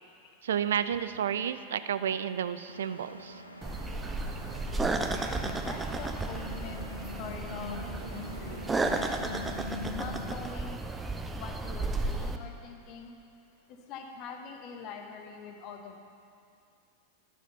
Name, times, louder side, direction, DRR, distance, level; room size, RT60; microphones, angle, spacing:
voice 1, 0.4-3.4, right 9 dB, 60° right, 13 dB, 0.3 m, -31 dB
Engine, 2.7-9.6, equal, 85° left, 0.6 m, -48 dB
sound 1, 3.6-12.4, right 3 dB, 15° right, 0.6 m, -33 dB
sound 2, 4.8-10.2, left 3 dB, 85° right, 1.0 m, -43 dB
voice 2, 5.6-9.2 9.9-10.8 11.3-13.2 13.9-16.0, left 5 dB, 40° left, 4 dB, 1.1 m, -44 dB
11.0 x 7.0 x 5.5 m, 2.5 s
figure-of-eight pair, 90°, 0 cm